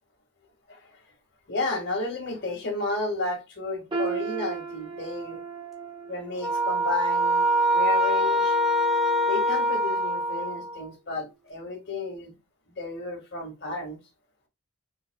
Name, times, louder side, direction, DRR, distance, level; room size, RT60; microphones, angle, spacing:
voice 1, 1.5-5.4 6.1-7.4 7.7-8.6 9.3-12.4 12.7-14.0, left 3 dB, 50° left, 2.0 m, -32 dB
sound 1, 3.9-9.9 10.3-10.5 11.2-11.3, right 4 dB, 20° right, 1.0 m, -37 dB
sound 2, 6.4-10.8, equal, ahead, 1.2 m, -24 dB
5.1 x 4.0 x 2.3 m
head